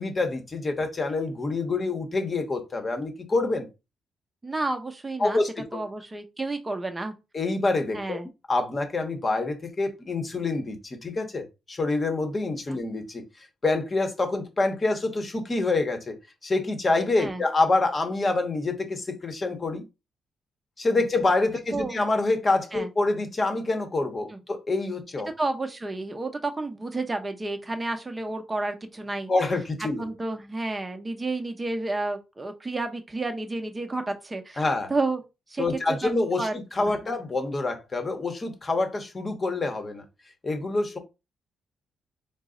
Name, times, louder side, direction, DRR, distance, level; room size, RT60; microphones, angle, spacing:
voice 1, 0.0-3.7 5.2-5.8 7.3-8.2 8.5-16.2 16.4-19.8 20.8-25.3 29.3-30.1 34.6-34.9 35.6-40.0 40.4-41.0, left 2 dB, 30° left, 0.9 m, -26 dB
voice 2, 4.4-5.4 5.7-7.1 7.9-8.3 12.7-12.8 17.2-17.4 21.7-22.0 22.7-22.9 24.3-24.4 25.4-29.3 30.0-35.2 35.5-35.7 36.0-36.1 36.4-36.5 36.8-36.9, right 2 dB, 20° right, 0.7 m, -31 dB
3.9 x 2.0 x 3.7 m
cardioid pair, 85°, 0 cm